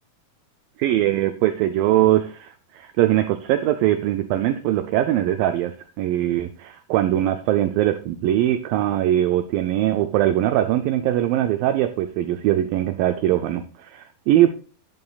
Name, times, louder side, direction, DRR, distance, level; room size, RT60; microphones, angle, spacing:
voice 1, 0.8-14.5, right 13 dB, 80° right, 9 dB, 2.1 m, -21 dB
11.0 x 11.0 x 2.4 m, 0.39 s
omnidirectional pair, 4.5 m